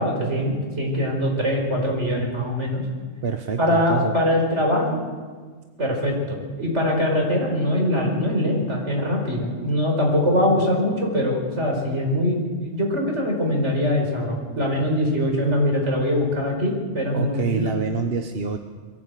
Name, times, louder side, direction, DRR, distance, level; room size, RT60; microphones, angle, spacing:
voice 1, 0.0-2.8 3.6-5.0 5.8-17.6, left 1 dB, 75° right, 1 dB, 5.1 m, -22 dB
voice 2, 3.2-4.2 17.1-18.6, right 5 dB, 55° right, 5 dB, 1.2 m, -26 dB
22.5 x 15.0 x 8.4 m, 1.5 s
omnidirectional pair, 1.2 m